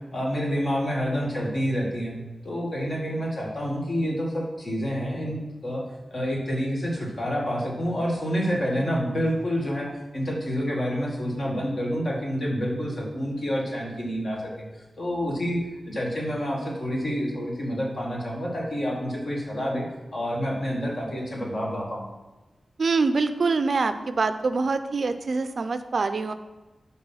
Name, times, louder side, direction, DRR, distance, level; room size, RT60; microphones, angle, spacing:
voice 1, 0.1-2.1 2.4-5.8 6.1-9.9 10.1-15.6 15.9-19.9 20.1-22.1, equal, 50° left, -2 dB, 1.6 m, -28 dB
voice 2, 22.8-26.3, right 4 dB, 55° right, 10 dB, 0.4 m, -25 dB
6.3 x 4.1 x 5.6 m, 1.1 s
wide cardioid pair, 130°, 0 cm